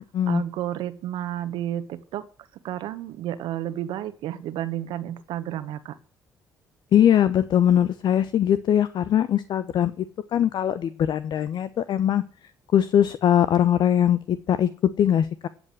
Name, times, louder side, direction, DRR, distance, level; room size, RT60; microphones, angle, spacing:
voice 1, 0.3-2.3 2.6-6.0, right 12 dB, 70° right, 11 dB, 1.4 m, -31 dB
voice 2, 6.9-10.0 10.3-12.2 12.7-14.7 15.0-15.5, left 10 dB, 60° left, 14 dB, 0.9 m, -21 dB
16.0 x 8.0 x 7.8 m, 0.43 s
hypercardioid pair, 50°, 9 cm